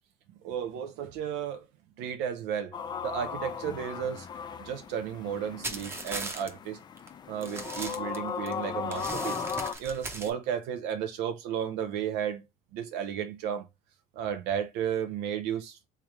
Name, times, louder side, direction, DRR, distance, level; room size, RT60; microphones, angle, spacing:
voice 1, 0.4-1.7 2.0-2.7 3.0-4.3 4.6-6.8 7.3-9.4 9.8-12.4 12.7-13.7 14.2-15.9, right 9 dB, 80° right, 0.6 m, -33 dB
sound 1, 2.7-9.8, left 7 dB, 25° left, 0.4 m, -37 dB
sound 2, 5.6-6.5 7.0-7.1 7.4-8.5 8.9-10.3, right 2 dB, 15° right, 0.8 m, -37 dB
3.5 x 3.4 x 2.9 m
cardioid pair, 135°, 17 cm